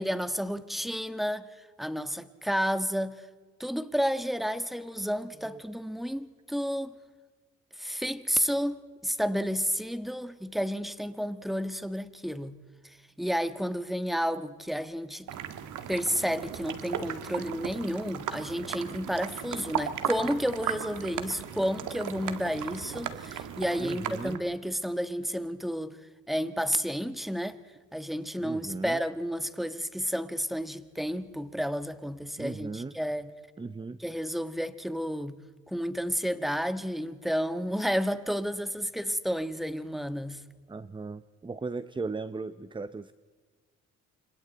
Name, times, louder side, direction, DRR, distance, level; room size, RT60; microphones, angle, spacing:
voice 1, 0.0-1.5 1.8-3.2 3.6-6.9 7.8-12.6 12.8-15.3 15.9-26.0 26.3-27.6 27.9-33.3 34.0-35.4 35.7-40.4, equal, ahead, 1.4 m, -31 dB
sound 1, 15.3-24.4, right 9 dB, 85° right, 1.9 m, -36 dB
voice 2, 23.8-24.5 28.4-29.0 32.4-33.0 33.6-34.0 40.7-43.1, right 3 dB, 15° right, 0.7 m, -37 dB
29.5 x 26.0 x 4.2 m
cardioid pair, 90°, 30 cm